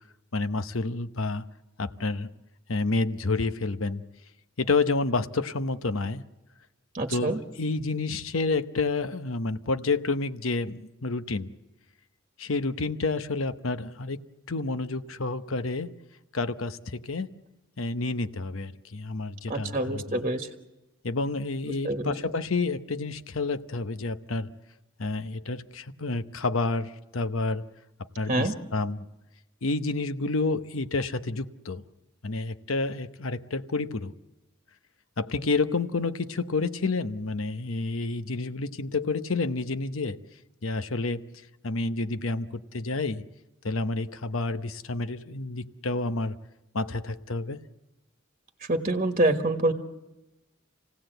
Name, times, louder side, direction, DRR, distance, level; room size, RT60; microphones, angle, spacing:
voice 1, 0.3-1.4 1.8-2.3 2.7-4.0 4.6-6.2 7.1-11.5 12.4-14.2 14.5-15.9 16.3-17.3 17.8-20.2 21.0-24.5 25.0-27.6 28.2-29.0 29.6-31.8 32.2-34.1 35.2-40.2 40.6-41.3 41.6-43.2 43.6-46.3 46.7-47.6, left 3 dB, 80° left, 11 dB, 0.9 m, -29 dB
voice 2, 6.9-7.4 19.5-20.5 21.8-22.1 28.3-28.5 48.6-49.7, right 2 dB, 35° right, 5 dB, 1.4 m, -26 dB
28.0 x 17.5 x 7.9 m, 1.0 s
head